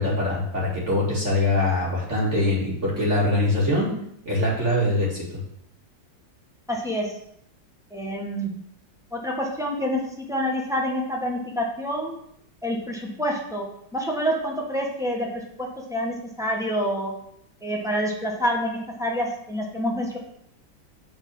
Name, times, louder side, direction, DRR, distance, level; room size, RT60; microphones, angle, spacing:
voice 1, 0.0-3.9 4.3-5.4, left 1 dB, 40° right, -4 dB, 2.3 m, -23 dB
voice 2, 6.7-7.1 7.9-8.5 9.1-12.1 12.6-13.6 13.9-17.1 17.6-20.2, equal, ahead, -1 dB, 0.8 m, -27 dB
7.1 x 4.2 x 5.4 m, 0.73 s
omnidirectional pair, 2.0 m